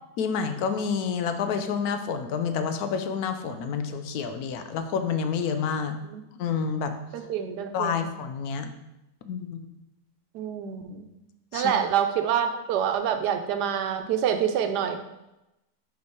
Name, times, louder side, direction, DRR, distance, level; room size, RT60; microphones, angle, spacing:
voice 1, 0.2-6.0 6.4-6.9 7.7-8.7 9.2-9.6 11.5-11.7, left 6 dB, 75° left, 8 dB, 1.1 m, -28 dB
voice 2, 7.1-8.0 10.3-11.0 11.5-15.0, right 8 dB, 90° right, 7 dB, 1.2 m, -26 dB
5.6 x 4.5 x 4.5 m, 0.93 s
omnidirectional pair, 1.7 m